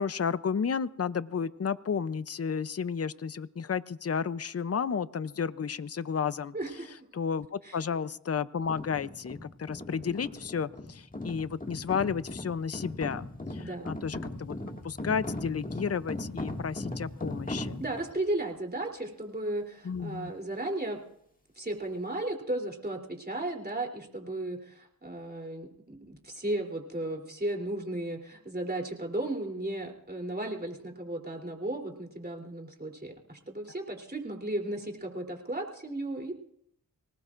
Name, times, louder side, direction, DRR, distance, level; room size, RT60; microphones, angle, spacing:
voice 1, 0.0-6.5 7.1-14.6 14.8-17.8 19.8-20.3, left 6 dB, 40° left, 15 dB, 0.7 m, -32 dB
voice 2, 6.5-6.9 7.6-7.8 13.6-13.9 17.8-21.0 21.6-36.3, right 1 dB, 25° right, 1 dB, 3.4 m, -35 dB
sound 1, 8.6-18.1, left 1 dB, 25° left, 2.0 m, -39 dB
24.5 x 18.5 x 2.6 m, 0.72 s
cardioid pair, 45°, 36 cm